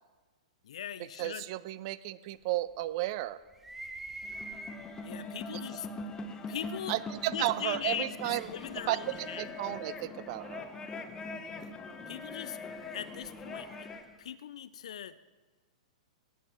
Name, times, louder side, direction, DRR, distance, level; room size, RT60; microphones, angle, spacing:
voice 1, 0.6-1.4 5.0-5.9 6.5-6.9 7.3-9.4 12.1-12.6 12.9-13.9 14.2-15.2, left 9 dB, 65° left, 15 dB, 0.4 m, -40 dB
voice 2, 1.2-3.4 6.9-8.5 8.9-10.6, right 16 dB, 45° right, 17 dB, 0.5 m, -33 dB
sound 1, 3.5-5.2 6.0-6.1 7.4-10.3 12.4-14.1, right 2 dB, 5° right, 0.8 m, -47 dB
sound 2, 4.2-14.1, left 3 dB, 20° left, 1.0 m, -42 dB
17.5 x 7.1 x 4.4 m, 1.3 s
figure-of-eight pair, 110°, 4 cm